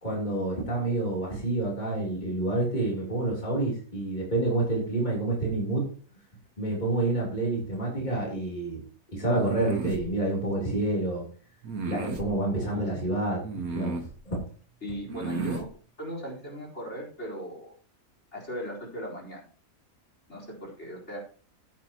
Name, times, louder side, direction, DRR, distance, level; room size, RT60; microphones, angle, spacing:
voice 1, 0.0-5.9 6.6-8.8 9.1-11.2 11.8-14.0 14.3-14.4, right 2 dB, 30° left, -4 dB, 3.6 m, -28 dB
sound 1, 9.3-10.0 11.6-12.3 13.4-14.2 15.1-15.7, right 3 dB, 80° right, 1.8 m, -34 dB
voice 2, 12.5-12.9 14.8-15.7 16.0-17.7 18.3-19.4 20.3-21.2, equal, 50° left, -2 dB, 4.6 m, -38 dB
15.5 x 9.3 x 2.9 m, 0.42 s
omnidirectional pair, 1.5 m